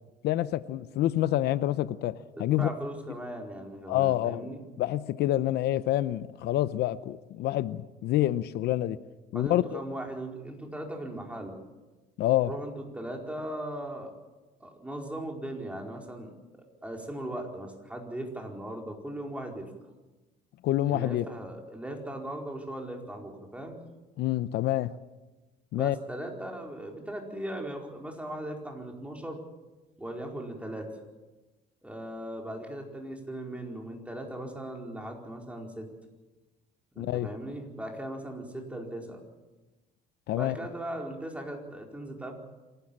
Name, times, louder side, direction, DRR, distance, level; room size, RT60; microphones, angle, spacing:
voice 1, 0.2-2.7 3.9-4.5 4.8-9.0 9.3-9.8 12.2-12.5 20.6-21.3 24.2-24.9 25.7-26.0 37.0-37.3 40.3-40.6, left 14 dB, 75° left, 15 dB, 0.7 m, -27 dB
voice 2, 2.4-4.6 9.3-11.6 12.5-14.1 14.6-19.7 20.9-23.8 25.7-29.4 30.0-30.9 31.8-35.9 36.9-39.2 40.3-42.3, right 1 dB, 5° right, 1 dB, 4.6 m, -38 dB
27.0 x 13.0 x 8.8 m, 1.1 s
cardioid pair, 110°, 17 cm